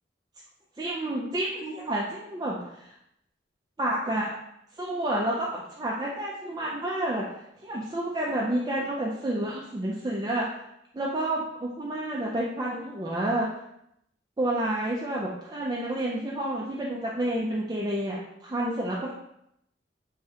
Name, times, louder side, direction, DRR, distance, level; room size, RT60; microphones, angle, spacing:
voice 1, 0.8-2.9 3.8-4.3 4.8-7.2 7.6-10.5 10.9-13.5 14.4-19.1, right 1 dB, 20° right, -4 dB, 0.4 m, -29 dB
3.2 x 2.8 x 3.6 m, 0.78 s
head